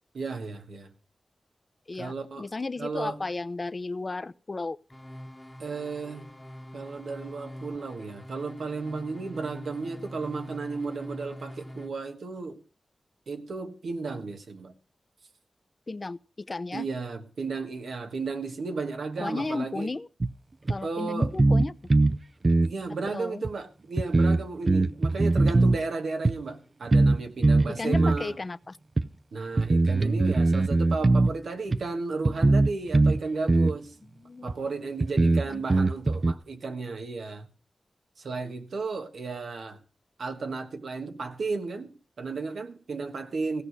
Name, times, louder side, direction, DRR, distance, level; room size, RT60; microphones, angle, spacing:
voice 1, 0.1-0.9 2.0-2.5 2.8-3.2 5.6-6.3 6.7-12.6 13.3-14.7 16.7-19.9 20.8-21.3 22.6-28.4 29.3-33.9 34.4-37.5 38.2-39.8 40.2-43.6, right 4 dB, 90° right, 1.5 m, -34 dB
voice 2, 1.9-4.8 15.9-16.9 19.2-20.1 20.7-21.7 23.1-23.5 27.7-28.8 34.2-34.6 35.5-35.8, left 3 dB, 45° left, 0.7 m, -34 dB
sound 1, 4.9-11.9, equal, 15° left, 1.2 m, -44 dB
sound 2, 20.2-20.3 20.7-20.8 21.2-22.2 22.4-22.7 23.4-23.5 24.0-25.8 26.2-26.4 26.9-27.2 27.4-28.2 29.0-29.1 29.6-31.3 31.7-31.8 32.2-33.2 33.5-33.8 34.5-34.6 35.0-36.3, right 2 dB, 45° right, 0.6 m, -21 dB
16.0 x 6.2 x 8.0 m
cardioid pair, 55°, 0 cm